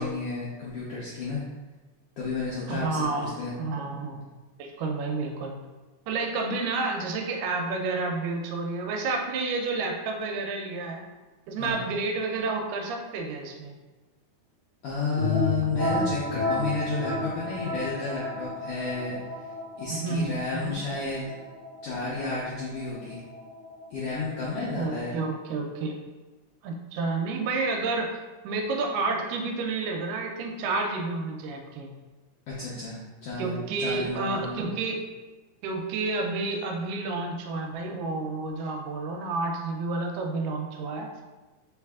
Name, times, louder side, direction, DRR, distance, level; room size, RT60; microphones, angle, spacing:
voice 1, 0.0-1.4 2.2-3.5 11.6-11.8 14.8-19.2 19.8-21.3 21.8-23.2 23.9-25.1 32.5-34.6, left 3 dB, 75° left, -8 dB, 1.3 m, -32 dB
voice 2, 2.7-4.3 4.6-5.6 6.1-11.0 11.5-13.7 19.9-20.8 24.8-26.0 26.6-28.1 28.4-31.9 33.4-35.0 35.6-41.1, right 3 dB, 85° right, 3 dB, 2.2 m, -30 dB
sound 1, 15.2-24.7, left 2 dB, 45° left, 1.1 m, -33 dB
4.7 x 3.2 x 3.5 m, 1.2 s
omnidirectional pair, 3.8 m